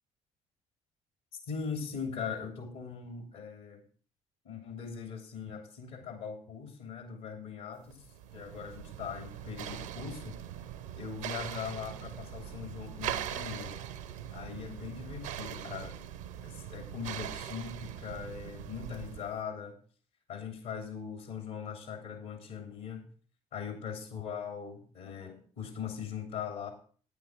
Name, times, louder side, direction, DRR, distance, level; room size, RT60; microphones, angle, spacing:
voice 1, 1.3-3.8 4.4-8.1 8.3-10.4 11.0-13.8 14.3-16.0 16.4-19.8 20.3-23.1 23.5-26.7, left 6 dB, 70° left, 4 dB, 2.9 m, -40 dB
sound 1, 7.9-19.4, right 10 dB, 75° right, 0.8 m, -41 dB
9.5 x 9.3 x 4.8 m, 0.43 s
figure-of-eight pair, 50°, 16 cm